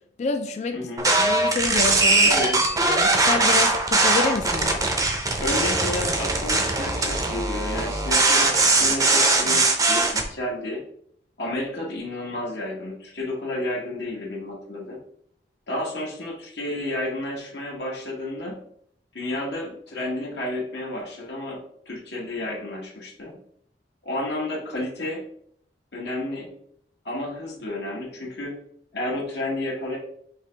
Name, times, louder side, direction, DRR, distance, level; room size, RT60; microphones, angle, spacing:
voice 1, 0.2-0.8 1.1-2.3 2.9-4.8, left 4 dB, 40° left, 0.3 m, -28 dB
sound 1, 1.0-10.2, right 2 dB, 20° right, 0.6 m, -21 dB
voice 2, 2.2-2.6 5.4-10.8 11.4-15.0 15.7-18.6 19.1-21.6 21.9-23.4 24.0-25.2 25.9-26.5 27.0-28.6 28.9-30.0, left 1 dB, 70° left, 1.1 m, -31 dB
4.9 x 2.9 x 3.2 m
head